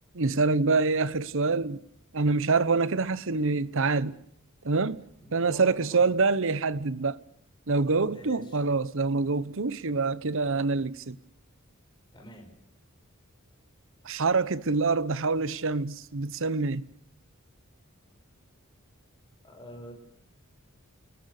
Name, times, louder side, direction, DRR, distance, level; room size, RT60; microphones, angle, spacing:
voice 1, 0.1-1.8 2.1-4.2 4.6-5.0 5.3-7.2 7.7-11.2 14.0-16.9, right 4 dB, 65° right, 0.9 m, -26 dB
voice 2, 5.2-6.1 8.0-8.6 12.1-12.5 19.4-19.9, equal, 20° left, 6.2 m, -46 dB
29.0 x 20.5 x 6.6 m
head